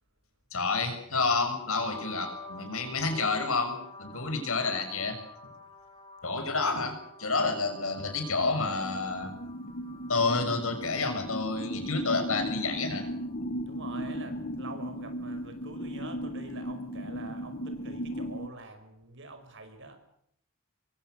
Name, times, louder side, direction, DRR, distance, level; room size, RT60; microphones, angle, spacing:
voice 1, 0.5-5.2 6.2-9.3 10.1-13.1, left 3 dB, 65° left, 6 dB, 6.7 m, -29 dB
sound 1, 1.7-13.3, left 2 dB, 25° left, 5.1 m, -49 dB
sound 2, 8.4-18.5, equal, 40° left, 1.6 m, -37 dB
voice 2, 13.7-20.0, right 2 dB, 55° right, 8 dB, 5.5 m, -45 dB
26.0 x 23.0 x 6.6 m, 0.69 s
head